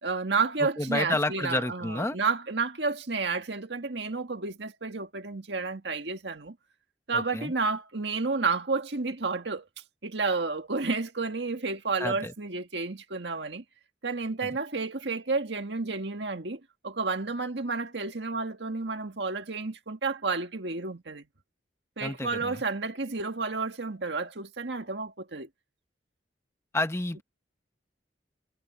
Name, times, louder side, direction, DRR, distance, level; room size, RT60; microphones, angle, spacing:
voice 1, 0.0-6.5 7.1-9.7 10.0-13.6 14.0-21.2 22.0-25.5, right 4 dB, 70° right, 1.8 m, -31 dB
voice 2, 0.8-2.2 7.1-7.5 12.0-12.3 22.0-22.6 26.7-27.2, left 2 dB, 15° left, 1.0 m, -30 dB
head